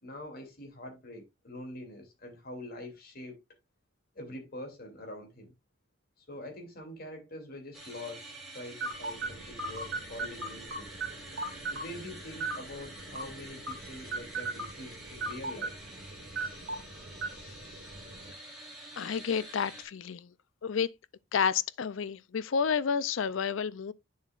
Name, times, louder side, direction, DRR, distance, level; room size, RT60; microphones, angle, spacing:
voice 1, 0.0-3.4 4.1-5.5 6.2-8.2 8.5-10.9 11.7-15.8, left 1 dB, 50° left, 2.7 m, -44 dB
sound 1, 7.7-19.8, right 1 dB, ahead, 2.9 m, -48 dB
sound 2, 8.8-18.3, right 3 dB, 70° right, 2.3 m, -39 dB
voice 2, 19.0-20.3 20.6-20.9 21.3-23.9, left 6 dB, 85° left, 0.5 m, -30 dB
8.6 x 7.2 x 2.4 m
head